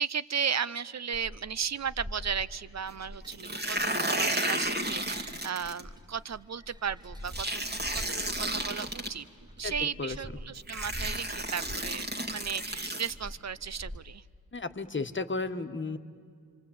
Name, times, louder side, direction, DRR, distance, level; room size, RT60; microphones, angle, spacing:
voice 1, 0.0-7.6 7.9-9.2 9.6-14.2, right 7 dB, 45° right, 18 dB, 0.7 m, -35 dB
sound 1, 1.1-14.0, equal, 10° right, 1.3 m, -45 dB
sound 2, 3.3-5.8 7.3-9.1 10.1-10.2 10.7-13.1, right 1 dB, 25° right, 2.3 m, -32 dB
voice 2, 14.5-16.0, left 3 dB, 30° left, 9 dB, 1.5 m, -33 dB
26.0 x 24.5 x 8.8 m, 2.3 s
supercardioid pair, 40°, 37 cm